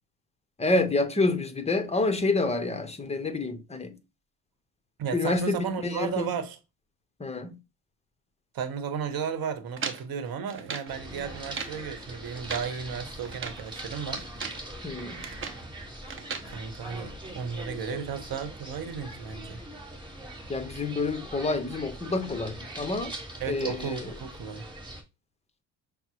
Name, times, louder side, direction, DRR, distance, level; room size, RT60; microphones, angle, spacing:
voice 1, 0.6-4.0 5.1-6.4 7.2-7.6 14.8-15.2 20.5-23.1 23.5-24.1, left 3 dB, 15° left, 0.6 m, -28 dB
voice 2, 5.0-6.6 8.5-14.3 16.5-19.6 23.4-24.7, right 7 dB, 50° right, 1.0 m, -34 dB
sound 1, 9.8-10.9 11.4-11.8 12.3-12.7 13.2-13.7 14.2-14.7 15.0-15.7 16.1-16.5, right 5 dB, 30° right, 0.7 m, -37 dB
sound 2, 10.9-25.0, right 1 dB, 10° right, 1.2 m, -42 dB
5.8 x 2.0 x 2.8 m
supercardioid pair, 85°, 44 cm